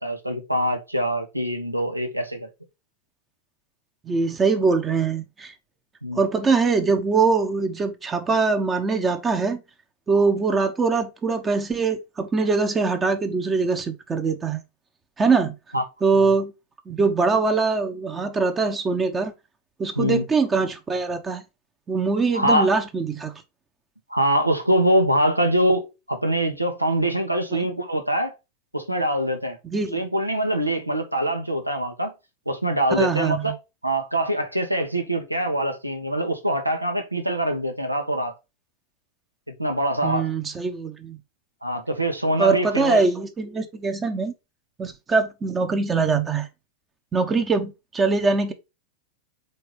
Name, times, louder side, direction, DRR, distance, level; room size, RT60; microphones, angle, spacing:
voice 1, 0.0-2.5 6.0-6.2 15.7-15.8 16.1-16.3 20.0-20.2 22.3-22.7 24.1-28.3 28.7-29.6 29.9-32.1 32.4-33.6 33.8-38.3 39.6-40.3 41.6-43.0, right 1 dB, 90° right, 1.2 m, -24 dB
voice 2, 4.0-5.5 6.1-9.6 10.1-14.6 15.2-15.5 16.0-16.5 16.9-19.3 19.8-21.4 21.9-23.3 27.5-27.7 29.6-30.0 33.0-33.5 40.0-41.2 42.4-44.3 44.8-46.5 47.1-48.5, right 4 dB, 20° right, 1.0 m, -22 dB
4.5 x 4.4 x 4.9 m
figure-of-eight pair, 90°, 0 cm